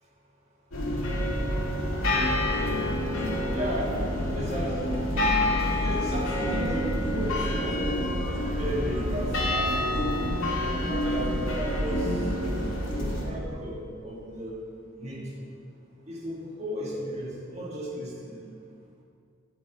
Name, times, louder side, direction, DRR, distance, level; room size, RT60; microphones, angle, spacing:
sound 1, 0.7-13.2, left 1 dB, 90° left, 1.9 m, -27 dB
voice 1, 3.5-4.0 4.3-5.0 5.8-7.9 8.6-10.0 10.6-12.2 12.9-14.6 15.0-15.4 16.1-18.4, equal, 35° right, -4 dB, 1.8 m, -34 dB
10.5 x 8.9 x 3.5 m, 2.3 s
head